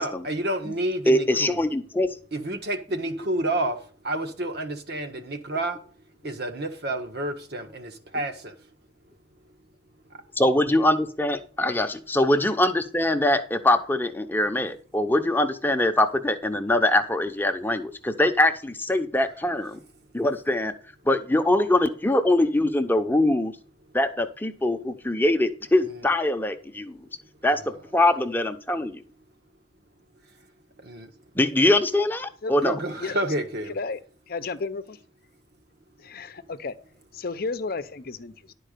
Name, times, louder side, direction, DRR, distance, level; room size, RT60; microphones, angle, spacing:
voice 1, 0.0-1.6 2.3-3.8 4.0-5.8 6.2-8.5 25.9-26.0 30.8-31.1 32.6-33.7, right 1 dB, 65° right, 1.4 m, -29 dB
voice 2, 1.1-2.1 10.4-19.8 20.1-20.7 21.0-23.5 23.9-27.0 27.4-27.6 27.9-29.0 31.3-32.7, left 1 dB, 10° left, 0.8 m, -23 dB
voice 3, 33.7-34.0 34.3-35.0 36.0-36.7 37.1-38.5, left 4 dB, 55° left, 0.7 m, -32 dB
11.5 x 4.6 x 6.6 m
head